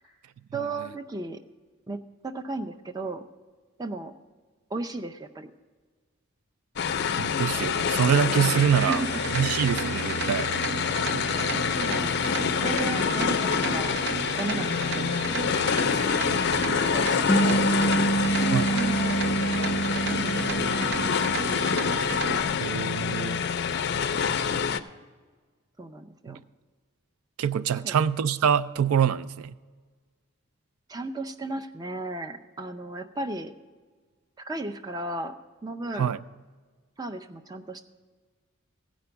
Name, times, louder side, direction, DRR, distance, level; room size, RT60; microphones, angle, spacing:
voice 1, 0.5-1.4 1.9-2.0 2.2-3.2 3.8-4.1 4.7-5.5 8.7-9.2 11.8-14.0 14.4-15.9 16.9-17.6 18.4-19.2 19.9-20.7 24.2-24.7 25.8-26.4 27.8-28.0 30.9-33.5 34.4-35.4 35.6-36.1 37.0-37.8, right 2 dB, 20° right, 0.4 m, -35 dB
sound 1, 6.8-24.8, left 6 dB, 50° left, 0.4 m, -27 dB
voice 2, 7.2-9.0 9.3-10.5 15.9-16.1 18.5-18.7 22.6-23.4 26.3-26.4 27.4-29.5 36.0-36.2, right 8 dB, 85° right, 0.3 m, -25 dB
sound 2, 8.7-22.4, right 4 dB, 55° right, 0.7 m, -33 dB
sound 3, 17.3-21.9, right 2 dB, 15° left, 0.7 m, -27 dB
15.5 x 5.2 x 6.9 m
head